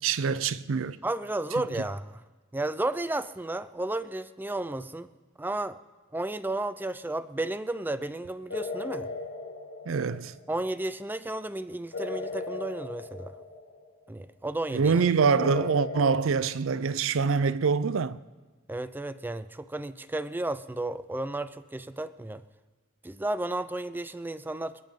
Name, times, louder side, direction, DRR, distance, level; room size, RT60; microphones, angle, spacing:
voice 1, 0.0-1.0 9.9-10.3 14.7-18.2, right 5 dB, 75° right, 0.5 m, -25 dB
voice 2, 1.0-2.2 2.5-5.1 5.4-5.8 6.1-9.1 10.5-13.3 14.1-14.9 18.7-22.4 23.0-24.8, right 2 dB, 10° right, 0.4 m, -33 dB
sound 1, 8.5-10.5 11.9-14.0 15.3-16.1, left 3 dB, 85° left, 5.6 m, -37 dB
26.0 x 9.4 x 3.7 m
head